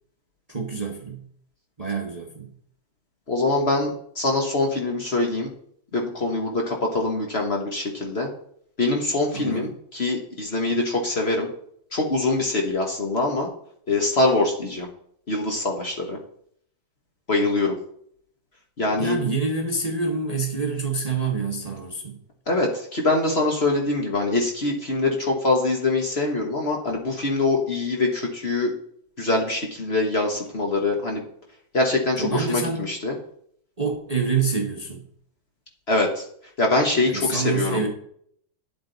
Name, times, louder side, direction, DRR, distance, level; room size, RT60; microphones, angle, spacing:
voice 1, 0.5-1.2 1.8-2.5 9.3-9.7 18.9-22.2 32.2-32.8 33.8-35.0 37.1-37.9, right 4 dB, 25° right, 1 dB, 1.0 m, -27 dB
voice 2, 3.3-5.5 5.9-8.3 8.8-11.5 11.9-13.5 13.9-14.9 15.3-16.2 17.3-17.8 18.8-19.2 22.5-28.7 29.2-31.2 31.7-33.1 35.9-36.3 36.6-37.8, left 2 dB, 40° left, 1 dB, 1.3 m, -24 dB
10.0 x 7.9 x 4.0 m, 0.66 s
omnidirectional pair, 1.9 m